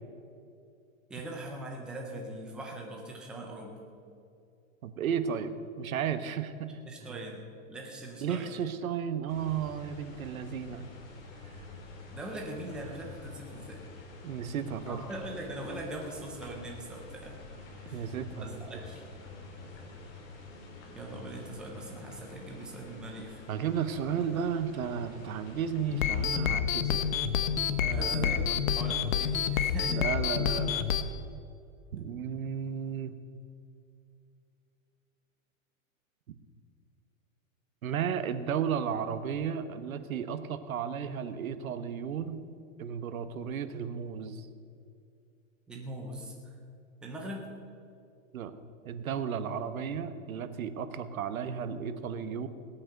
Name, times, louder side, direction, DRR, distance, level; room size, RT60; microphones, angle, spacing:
voice 1, 1.1-3.8 6.9-7.4 7.7-8.5 12.1-13.8 14.9-17.4 17.9-18.1 18.4-19.0 20.9-23.4 27.9-30.0 45.7-46.5 47.0-47.5, right 1 dB, ahead, 0 dB, 0.4 m, -41 dB
voice 2, 4.8-7.2 8.2-10.8 11.5-11.7 14.2-15.0 17.9-18.6 23.5-27.0 27.8-28.6 29.8-31.0 31.9-33.1 37.8-42.4 42.8-44.5 48.3-48.5 48.8-52.5, right 7 dB, 90° right, 11 dB, 1.2 m, -34 dB
sound 1, 9.3-26.3, left 3 dB, 45° left, 3.4 m, -48 dB
sound 2, 25.9-31.0, left 8 dB, 75° left, 1.1 m, -28 dB
18.0 x 8.8 x 6.6 m, 2.5 s
supercardioid pair, 160°, 40 cm